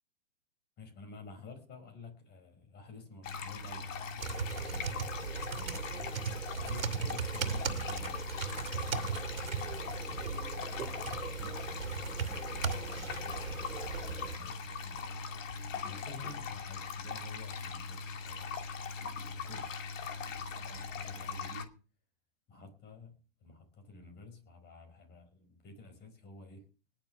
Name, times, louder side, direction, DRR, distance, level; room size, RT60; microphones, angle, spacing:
voice 1, 0.8-6.2 6.6-10.5 10.9-15.2 15.8-18.6 19.3-19.7 20.5-21.7 22.5-26.7, left 3 dB, 25° left, 5.1 m, -52 dB
sound 1, 3.2-21.7, left 5 dB, 70° left, 2.8 m, -40 dB
sound 2, 4.2-14.4, right 6 dB, 85° right, 2.4 m, -38 dB
19.5 x 6.9 x 6.8 m
hypercardioid pair, 135°, 39 cm